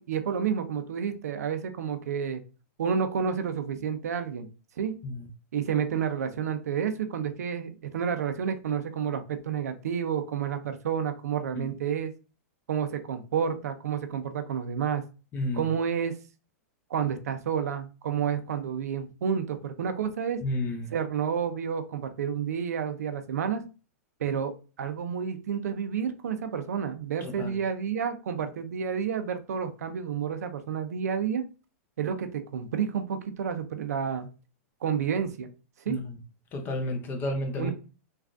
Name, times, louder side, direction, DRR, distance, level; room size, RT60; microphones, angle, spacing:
voice 1, 0.0-2.4 2.8-4.5 4.8-4.9 5.5-12.1 12.7-15.0 15.5-16.2 16.9-20.4 20.9-23.6 24.2-31.4 32.0-34.3 34.8-35.5 35.8-36.0 37.6-37.7, right 7 dB, 90° right, 8 dB, 0.5 m, -30 dB
voice 2, 15.3-15.7 20.4-20.9 27.2-27.5 35.9-36.1 36.5-37.7, left 1 dB, 25° left, 4 dB, 0.5 m, -31 dB
3.4 x 2.4 x 2.4 m, 0.34 s
hypercardioid pair, 145°, 8 cm